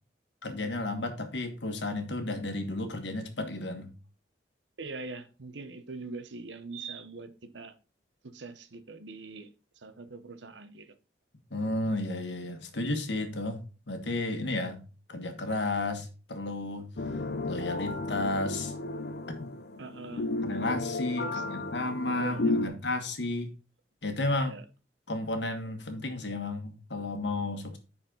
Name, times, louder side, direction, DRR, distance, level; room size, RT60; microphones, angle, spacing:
voice 1, 0.4-3.9 11.5-13.6 13.9-14.8 15.1-16.9 17.5-18.7 19.4-19.5 20.4-23.5 24.0-24.5 25.1-27.8, left 2 dB, 80° left, 1.5 m, -32 dB
voice 2, 4.8-7.8 8.2-9.5 9.8-10.9 19.8-20.3 21.1-21.6 22.1-22.7 24.4-24.6, right 3 dB, 90° right, 0.9 m, -43 dB
sound 1, 17.0-22.7, left 2 dB, 60° left, 0.6 m, -33 dB
10.0 x 4.3 x 3.9 m
head